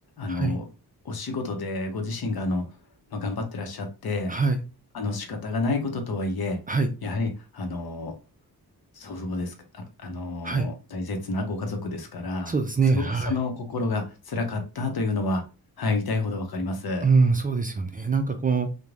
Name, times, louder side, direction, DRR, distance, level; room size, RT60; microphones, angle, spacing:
voice 1, 0.2-0.6 1.0-2.7 3.1-4.4 4.9-6.6 7.0-8.1 8.9-12.5 12.9-15.4 15.8-17.1, left 3 dB, 75° left, 4 dB, 0.7 m, -29 dB
voice 2, 4.3-4.6 6.7-6.9 10.4-10.7 12.5-13.3 17.0-18.7, right 4 dB, 25° right, 6 dB, 0.3 m, -23 dB
3.1 x 2.1 x 2.4 m, 0.31 s
wide cardioid pair, 90°, 38 cm